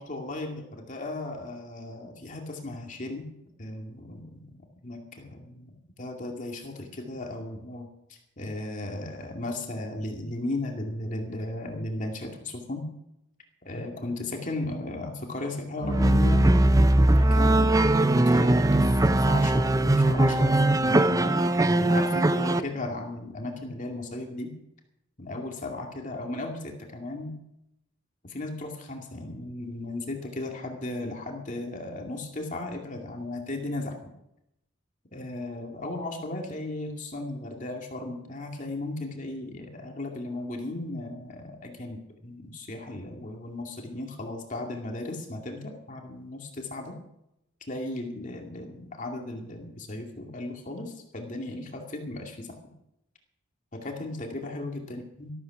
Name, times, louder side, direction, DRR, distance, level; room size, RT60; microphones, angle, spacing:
voice 1, 0.0-3.3 3.6-12.8 13.6-16.5 17.2-24.5 25.2-27.3 28.2-34.1 35.1-47.0 47.7-52.6 53.7-55.3, left 2 dB, 40° left, 2 dB, 2.4 m, -36 dB
sound 1, 15.8-22.6, right 1 dB, 15° right, 0.5 m, -20 dB
13.5 x 12.5 x 6.0 m, 0.84 s
head